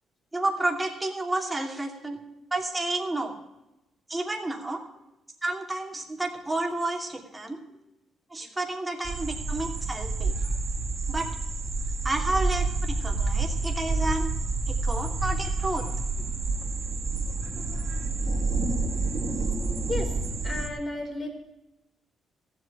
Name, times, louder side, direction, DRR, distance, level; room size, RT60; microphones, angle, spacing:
voice 1, 0.3-2.2 2.5-3.4 4.1-4.8 5.4-7.6 8.3-10.3 11.1-11.3 12.0-14.3 14.7-15.9, right 2 dB, 15° right, 2 dB, 2.6 m, -30 dB
sound 1, 9.0-20.7, right 3 dB, 45° right, 3.4 m, -28 dB
voice 2, 20.4-21.3, left 2 dB, 25° left, 1 dB, 4.4 m, -33 dB
15.0 x 8.1 x 6.5 m, 0.92 s
cardioid pair, 90°, 0 cm